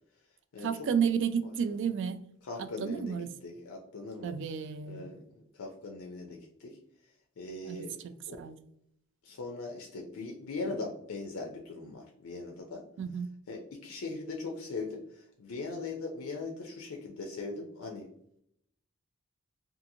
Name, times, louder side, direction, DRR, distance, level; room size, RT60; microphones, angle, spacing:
voice 1, 0.6-2.2 2.6-3.3 4.2-5.1 7.6-8.1 8.4-8.6 13.0-13.3, right 7 dB, 60° right, 10 dB, 0.3 m, -32 dB
voice 2, 2.4-4.3 4.9-6.8 7.4-8.0 8.3-8.4 9.2-12.8 13.5-18.1, left 3 dB, 80° left, 1 dB, 0.5 m, -40 dB
2.7 x 2.5 x 2.6 m, 0.72 s
head